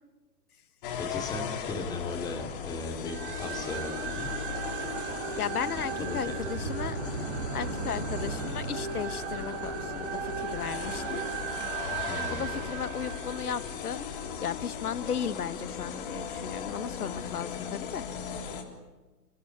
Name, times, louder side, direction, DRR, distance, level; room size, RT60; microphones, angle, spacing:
sound 1, 0.8-18.6, left 7 dB, 30° left, 3.6 m, -37 dB
voice 1, 1.0-4.3 5.7-6.7 12.1-12.6, left 3 dB, 10° left, 4 dB, 2.5 m, -37 dB
sound 2, 3.1-14.3, right 7 dB, 35° right, 4.8 m, -36 dB
voice 2, 5.4-7.0 7.5-11.2 12.3-14.1 14.4-18.0, left 8 dB, 65° left, 15 dB, 1.3 m, -35 dB
29.5 x 17.0 x 9.9 m, 1.2 s
hypercardioid pair, 145°, 49 cm